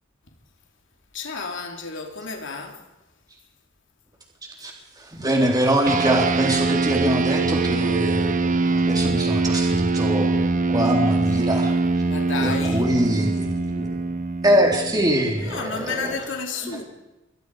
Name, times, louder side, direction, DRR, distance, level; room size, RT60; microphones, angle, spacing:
voice 1, 1.1-2.9 12.1-12.9 15.3-16.8, left 4 dB, 65° left, 3.5 m, -31 dB
voice 2, 5.0-10.4 10.7-11.7 12.4-14.0 14.4-16.2 16.6-16.8, right 1 dB, 20° right, 3.6 m, -23 dB
sound 1, 5.9-15.6, right 3 dB, 40° right, 1.2 m, -23 dB
28.0 x 23.0 x 5.0 m
head